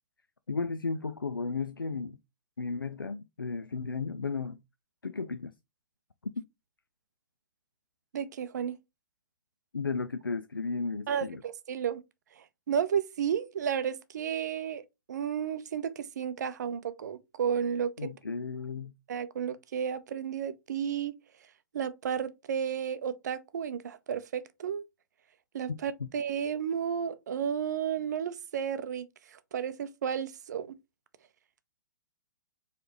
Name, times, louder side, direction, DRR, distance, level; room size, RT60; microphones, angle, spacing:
voice 1, 0.5-2.2 2.6-4.6 5.0-5.5 9.7-11.4 18.0-18.9 26.0-26.1, left 4 dB, 85° left, 0.4 m, -34 dB
voice 2, 8.1-8.8 11.1-12.0 12.3-14.8 15.1-18.1 19.1-21.2 21.7-24.9 25.5-30.7, right 8 dB, 55° right, 0.5 m, -32 dB
4.8 x 3.3 x 2.9 m
figure-of-eight pair, 110°, 11 cm